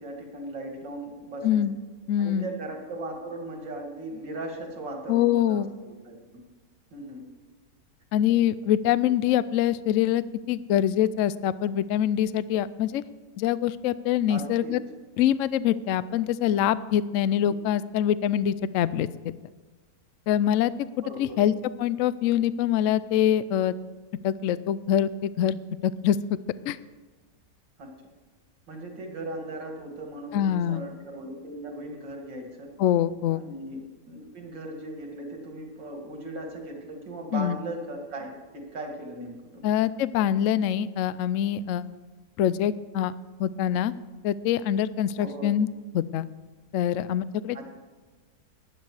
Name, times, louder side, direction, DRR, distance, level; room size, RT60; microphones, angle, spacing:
voice 1, 0.0-1.6 2.2-6.2 6.9-7.2 14.3-14.7 17.4-17.5 21.0-21.5 27.8-27.9 28.7-32.7 33.3-39.7 45.2-45.5 47.5-47.6, right 1 dB, 90° right, 2 dB, 2.7 m, -38 dB
voice 2, 1.4-1.7 2.1-2.5 5.1-5.7 8.1-13.0 13.4-14.8 15.2-19.3 20.3-20.7 21.2-21.5 21.8-23.8 24.2-25.6 25.8-26.2 26.7-26.8 30.3-30.8 32.8-33.4 37.3-37.6 39.6-41.9 42.4-43.1 43.4-43.9 44.2-45.7 45.9-46.3 46.7-47.6, left 10 dB, 80° left, 16 dB, 0.7 m, -24 dB
15.5 x 11.0 x 4.8 m, 1.3 s
omnidirectional pair, 1.9 m